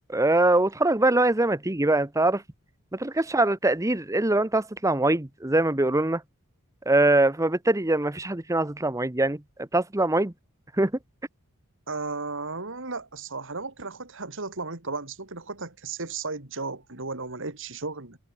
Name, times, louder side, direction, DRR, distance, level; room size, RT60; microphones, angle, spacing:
voice 1, 0.1-2.4 2.9-6.2 6.9-9.4 9.7-10.3 10.8-10.9, right 2 dB, 15° right, 1.0 m, -23 dB
voice 2, 11.9-18.2, right 3 dB, 60° right, 3.1 m, -34 dB
head